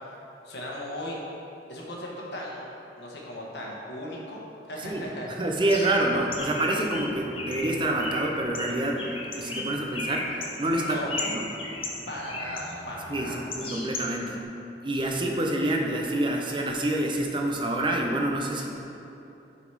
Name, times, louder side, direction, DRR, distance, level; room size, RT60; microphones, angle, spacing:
voice 1, 0.4-1.2 1.7-2.7 3.0-4.4 4.7-5.3 10.8-11.1 12.1-13.4, left 1 dB, 70° left, -3 dB, 1.1 m, -37 dB
voice 2, 5.4-11.0 11.3-11.5 13.1-14.4 14.8-18.7, right 1 dB, 30° right, 1 dB, 0.6 m, -27 dB
Bird, 5.7-14.4, left 2 dB, 30° left, 0.8 m, -37 dB
7.3 x 4.0 x 4.7 m, 2.9 s
head